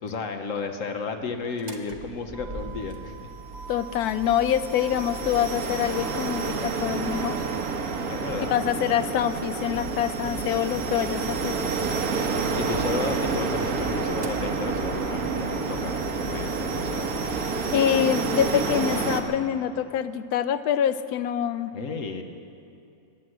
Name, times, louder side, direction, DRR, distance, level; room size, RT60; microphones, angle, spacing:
voice 1, 0.0-3.3 8.1-8.9 12.5-17.2 21.7-22.2, left 4 dB, 60° left, 6 dB, 1.3 m, -33 dB
Motor vehicle (road), 1.4-16.1, right 5 dB, 35° right, 0.8 m, -44 dB
sound 1, 3.6-19.2, right 4 dB, 70° right, 1.5 m, -29 dB
voice 2, 3.7-7.4 8.5-11.6 17.3-17.4 17.7-21.7, left 10 dB, 80° left, 13 dB, 1.1 m, -25 dB
sound 2, 9.7-17.7, equal, 25° left, 0.7 m, -41 dB
21.0 x 7.7 x 7.9 m, 2.6 s
omnidirectional pair, 1.6 m